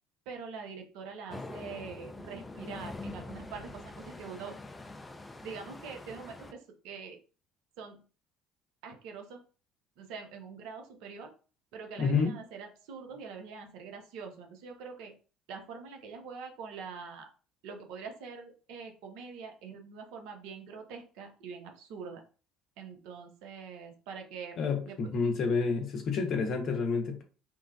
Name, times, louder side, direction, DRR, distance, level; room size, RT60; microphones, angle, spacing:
voice 1, 0.3-4.6 5.4-7.2 7.8-8.0 8.8-9.4 10.0-11.3 11.7-15.1 15.5-17.3 17.6-22.2 22.8-24.6 24.8-25.0, right 5 dB, 65° right, 0.6 m, -44 dB
sound 1, 1.3-6.5, left 2 dB, 15° left, 0.3 m, -44 dB
voice 2, 12.0-12.3 24.6-27.2, left 4 dB, 55° left, 0.6 m, -29 dB
3.0 x 2.2 x 2.2 m
hypercardioid pair, 60°, 0 cm